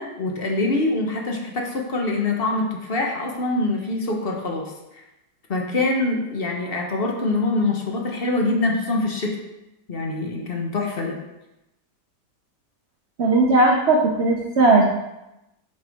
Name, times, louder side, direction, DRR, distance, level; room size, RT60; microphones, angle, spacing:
voice 1, 0.0-5.0 5.5-9.4 9.9-11.2, left 2 dB, 40° left, 0 dB, 1.0 m, -24 dB
voice 2, 13.2-14.8, right 2 dB, 55° right, 0 dB, 0.8 m, -17 dB
7.7 x 4.8 x 3.6 m, 0.92 s
omnidirectional pair, 1.8 m